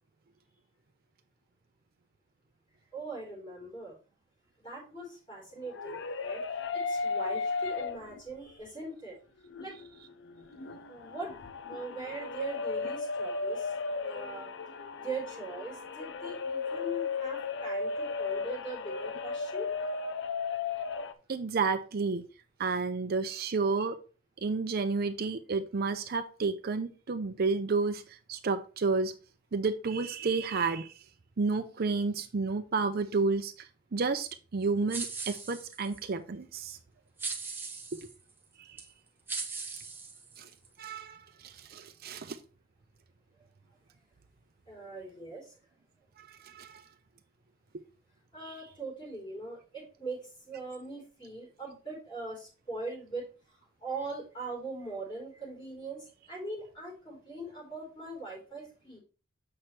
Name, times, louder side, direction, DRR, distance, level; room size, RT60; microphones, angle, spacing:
voice 1, 2.9-4.0 4.6-6.4 6.7-9.1 9.6-9.8 10.9-11.3 11.7-13.7 14.0-14.5 15.0-19.7 23.3-23.4 44.7-45.5 48.3-59.0, right 2 dB, 20° left, -3 dB, 4.0 m, -41 dB
sound 1, 5.5-8.3 8.8-8.9 9.4-21.1, left 4 dB, 60° left, 0.6 m, -35 dB
voice 2, 21.3-22.2 22.6-24.0 24.4-28.0 28.3-29.1 29.5-30.9 31.4-33.7 33.9-36.8 40.4-40.5 40.8-42.4 46.4-46.8 48.4-48.5, right 4 dB, 45° right, 8 dB, 0.5 m, -31 dB
sound 2, 34.9-36.0 37.2-38.1 38.8-38.9 39.3-40.7, right 4 dB, 10° right, 1.1 m, -39 dB
7.6 x 6.0 x 3.2 m, 0.35 s
head